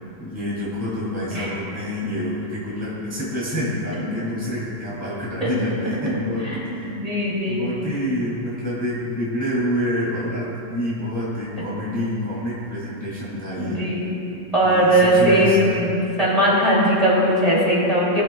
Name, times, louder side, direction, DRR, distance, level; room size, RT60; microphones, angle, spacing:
voice 1, 0.2-6.4 6.7-6.9 7.5-13.8 14.6-15.9, left 1 dB, 10° left, -8 dB, 2.3 m, -27 dB
voice 2, 6.4-7.6 13.6-14.1 14.5-18.2, right 1 dB, 20° right, -7 dB, 2.9 m, -19 dB
20.5 x 11.0 x 2.3 m, 2.8 s
omnidirectional pair, 2.0 m